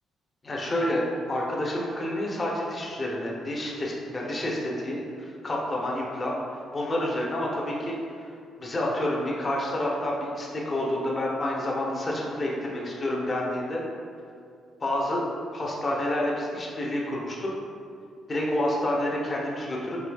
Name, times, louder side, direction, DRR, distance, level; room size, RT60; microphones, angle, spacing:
voice 1, 0.4-8.0 8.6-13.8 14.8-15.2 15.5-17.5 18.3-20.0, left 1 dB, 30° left, -3 dB, 0.7 m, -29 dB
4.8 x 2.7 x 2.3 m, 2.4 s
cardioid pair, 90°, 0 cm